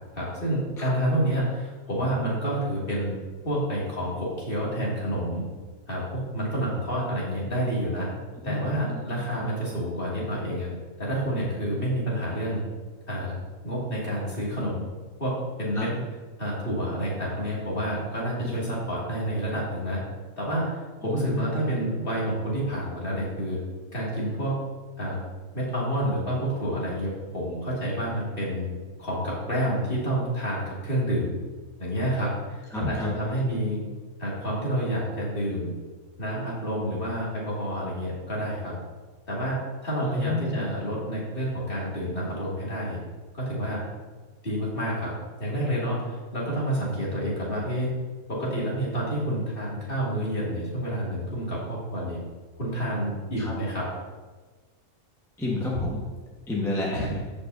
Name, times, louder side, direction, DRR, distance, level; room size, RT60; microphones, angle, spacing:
voice 1, 0.1-3.1 3.4-5.4 5.9-8.1 8.4-10.7 11.0-12.6 13.1-13.4 13.6-14.9 15.2-15.9 16.4-20.0 20.4-23.6 23.9-24.6 25.0-25.2 25.5-28.7 29.0-31.3 31.8-33.8 34.2-35.7 36.2-38.7 39.3-43.0 43.3-43.8 44.4-45.1 45.4-47.9 48.3-52.2 52.5-53.9 56.9-57.2, right 1 dB, 40° left, -6 dB, 2.6 m, -29 dB
voice 2, 8.4-9.0 15.7-16.1 18.4-18.7 21.0-21.4 32.7-33.2 40.0-40.6 53.4-53.5 55.4-56.1 56.5-57.2, left 2 dB, ahead, -4 dB, 1.1 m, -30 dB
15.0 x 5.5 x 2.7 m, 1.3 s
omnidirectional pair, 1.5 m